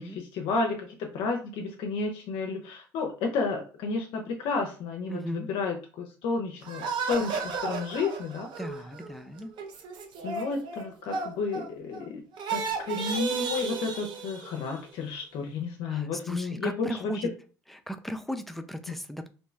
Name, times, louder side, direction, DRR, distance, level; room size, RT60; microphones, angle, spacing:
voice 1, 0.0-8.5 10.2-12.2 12.5-17.3, left 4 dB, 65° left, 0.5 m, -31 dB
voice 2, 5.1-5.5 8.6-9.5 15.9-17.3 17.9-19.3, equal, ahead, 0.4 m, -36 dB
sound 1, 6.6-12.0 12.3-14.8, right 4 dB, 60° right, 0.6 m, -34 dB
2.6 x 2.2 x 3.1 m
hypercardioid pair, 65°, 9 cm